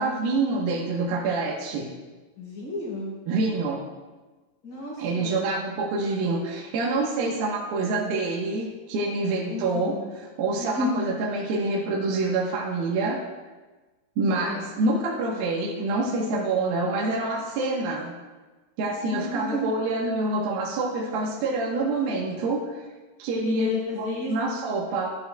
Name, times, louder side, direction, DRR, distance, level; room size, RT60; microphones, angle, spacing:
voice 1, 0.0-1.9 3.3-3.8 5.0-13.2 14.2-18.2 18.8-22.8 23.2-23.7 24.0-25.1, right 3 dB, 70° right, -3 dB, 2.9 m, -26 dB
voice 2, 2.4-3.2 4.6-5.5 9.5-10.1 10.6-11.0 14.3-14.7 19.1-19.6 23.4-24.6, left 2 dB, 70° left, -7 dB, 5.3 m, -32 dB
13.0 x 11.5 x 2.3 m, 1.3 s
omnidirectional pair, 4.6 m